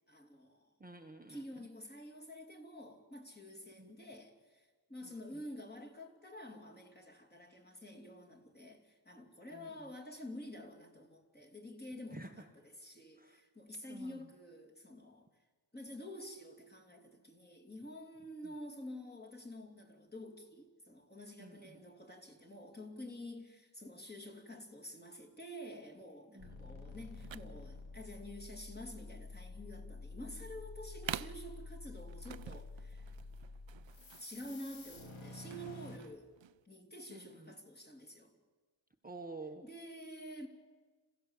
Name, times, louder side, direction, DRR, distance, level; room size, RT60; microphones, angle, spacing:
voice 1, 0.0-0.7 1.3-15.3 15.7-33.1 34.2-36.3 36.6-38.3 39.6-40.5, left 1 dB, 20° left, 2.9 m, -49 dB
voice 2, 0.8-1.4 3.8-3.9 5.0-5.4 9.5-9.8 12.1-12.5 13.2-13.4 13.9-14.3 21.4-21.8 26.3-26.8 37.1-37.5 39.0-39.6, right 2 dB, 20° right, 1.0 m, -50 dB
sound 1, 26.4-36.0, left 3 dB, 85° left, 2.5 m, -49 dB
sound 2, 27.2-36.6, right 10 dB, 70° right, 0.6 m, -49 dB
27.0 x 16.0 x 8.2 m
wide cardioid pair, 105°, 46 cm